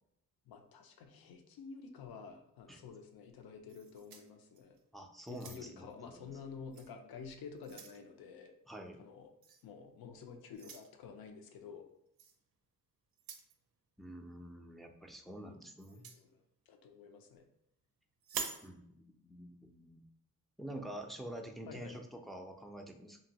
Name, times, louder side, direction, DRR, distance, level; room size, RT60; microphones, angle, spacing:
voice 1, 0.5-4.8 5.3-8.5 9.0-9.3 9.6-11.9 15.9-17.4 21.7-22.0, left 5 dB, 90° left, 5 dB, 0.5 m, -50 dB
sound 1, 3.7-4.8 5.3-5.9 6.7-6.9 7.3-8.0 9.4-9.6 10.5-10.9 12.2-12.4 13.1-13.5 15.8-16.2 18.2-18.7, right 6 dB, 90° right, 0.5 m, -46 dB
voice 2, 4.9-6.3 8.7-9.0 14.0-16.1 18.6-20.1 20.6-23.2, right 1 dB, ahead, 2 dB, 0.3 m, -47 dB
2.8 x 2.5 x 2.8 m, 0.76 s
cardioid pair, 90°, 35 cm